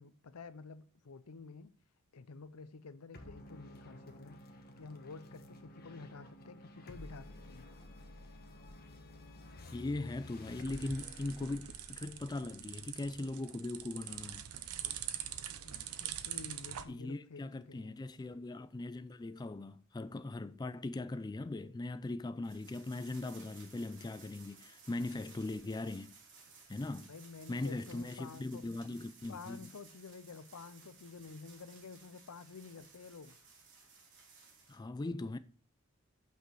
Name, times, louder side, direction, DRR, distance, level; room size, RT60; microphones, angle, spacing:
voice 1, 0.0-1.7 2.1-4.4 4.8-7.6 15.6-18.0 27.1-28.6 29.3-33.4, left 4 dB, 85° left, 0.6 m, -50 dB
sound 1, 3.1-13.9, left 1 dB, 45° left, 1.3 m, -53 dB
voice 2, 9.7-14.5 16.9-26.1 26.7-27.1 27.5-29.7 34.7-35.4, left 2 dB, 20° left, 0.3 m, -40 dB
sound 2, 10.1-16.8, right 10 dB, 85° right, 0.8 m, -44 dB
sound 3, 22.4-34.8, right 5 dB, 60° right, 2.7 m, -59 dB
8.4 x 6.1 x 4.6 m
head